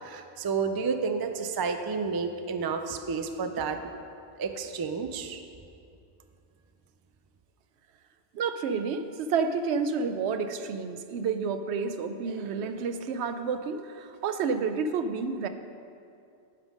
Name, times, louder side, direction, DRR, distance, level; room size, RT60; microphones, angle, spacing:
voice 1, 0.0-3.8 4.4-5.4, right 5 dB, 40° right, 7 dB, 0.3 m, -30 dB
voice 2, 8.3-15.5, right 5 dB, 85° right, 9 dB, 0.9 m, -30 dB
9.8 x 5.7 x 5.2 m, 2.5 s
omnidirectional pair, 1.1 m